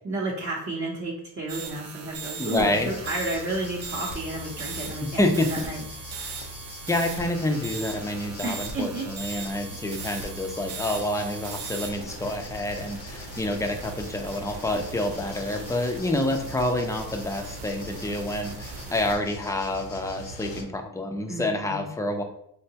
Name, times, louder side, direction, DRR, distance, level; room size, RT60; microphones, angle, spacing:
voice 1, 0.0-5.2 5.5-5.8 8.4-9.5 21.3-21.9, right 2 dB, 30° right, -3 dB, 0.7 m, -32 dB
sound 1, 1.5-19.1, right 4 dB, 80° right, 0.7 m, -39 dB
voice 2, 2.4-2.9 5.2-5.7 6.9-22.2, left 1 dB, 10° left, 4 dB, 0.4 m, -28 dB
sound 2, 2.7-20.6, left 1 dB, 80° left, 0.7 m, -42 dB
3.7 x 2.2 x 2.7 m, 0.72 s
cardioid pair, 90°, 41 cm